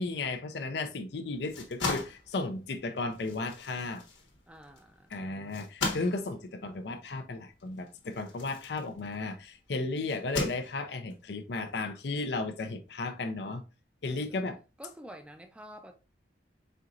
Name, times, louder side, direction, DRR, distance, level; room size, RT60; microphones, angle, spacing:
voice 1, 0.0-4.0 5.1-13.6 14.0-14.6, left 3 dB, 65° left, 0.5 m, -34 dB
sound 1, 1.3-9.4 10.1-11.1, left 3 dB, 90° left, 1.2 m, -38 dB
voice 2, 4.5-5.4 14.1-14.4 14.8-15.9, right 1 dB, 5° right, 0.5 m, -49 dB
4.4 x 3.8 x 2.4 m
head